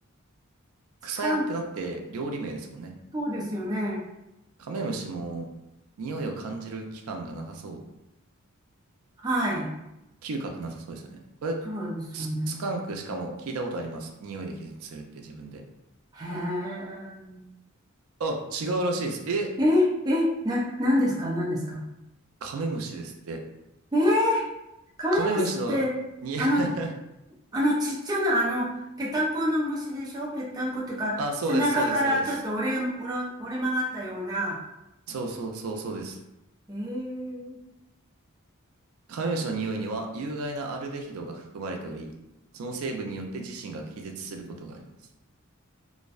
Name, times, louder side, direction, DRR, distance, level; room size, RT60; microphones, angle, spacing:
voice 1, 1.0-2.9 4.6-5.5 6.0-7.8 10.2-11.6 12.1-15.6 18.2-19.5 22.4-23.4 25.1-25.8 26.2-26.9 31.2-32.2 35.1-36.2 39.1-42.1 42.5-44.8, right 3 dB, 90° right, 2 dB, 0.4 m, -32 dB
voice 2, 3.1-4.0 9.2-9.7 11.7-12.6 16.1-17.5 19.6-21.9 23.9-24.5 25.0-25.4 25.7-26.0 26.4-26.6 27.5-31.2 31.5-34.6 36.7-37.6, equal, 20° right, -4 dB, 0.4 m, -27 dB
2.5 x 2.1 x 2.3 m, 0.90 s
head